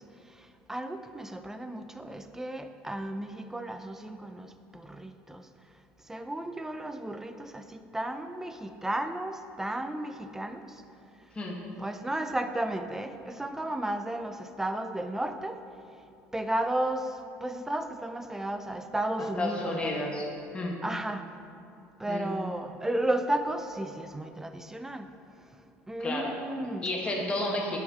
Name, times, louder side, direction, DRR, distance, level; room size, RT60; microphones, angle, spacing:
voice 1, 0.0-5.5 6.0-10.8 11.8-15.6 16.3-20.1 20.8-21.3 22.0-25.1 25.5-25.6 25.9-26.9, right 1 dB, 10° right, 8 dB, 0.4 m, -33 dB
voice 2, 19.2-20.2 20.5-20.8 22.1-22.3 26.0-26.3 26.8-27.8, left 2 dB, 20° left, -1 dB, 1.3 m, -31 dB
9.4 x 5.5 x 3.6 m, 2.6 s
supercardioid pair, 110°, 5 cm